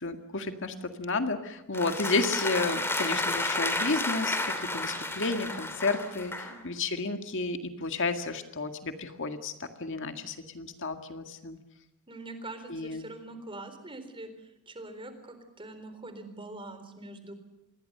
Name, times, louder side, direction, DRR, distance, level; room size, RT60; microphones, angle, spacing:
voice 1, 0.0-11.6 12.7-13.0, left 3 dB, 55° left, 7 dB, 2.0 m, -32 dB
sound 1, 1.7-6.6, left 2 dB, 10° left, 3.0 m, -31 dB
voice 2, 5.8-6.6 12.1-17.3, right 2 dB, 25° right, 9 dB, 4.0 m, -44 dB
27.5 x 21.0 x 6.7 m, 0.94 s
head